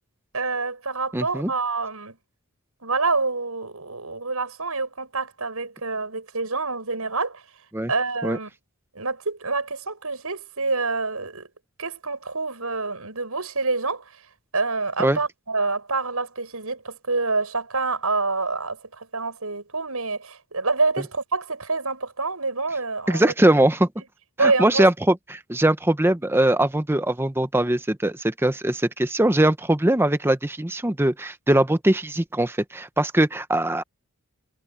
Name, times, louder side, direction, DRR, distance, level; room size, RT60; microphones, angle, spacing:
voice 1, 0.3-2.2 2.8-7.4 7.9-8.5 8.9-11.5 11.8-14.2 14.5-23.3 24.4-24.9, right 3 dB, 80° right, 6.8 m, -27 dB
voice 2, 1.1-1.5 7.7-7.9 8.2-8.4 15.0-15.2 23.1-23.9 24.4-33.8, right 1 dB, 10° right, 0.8 m, -21 dB
head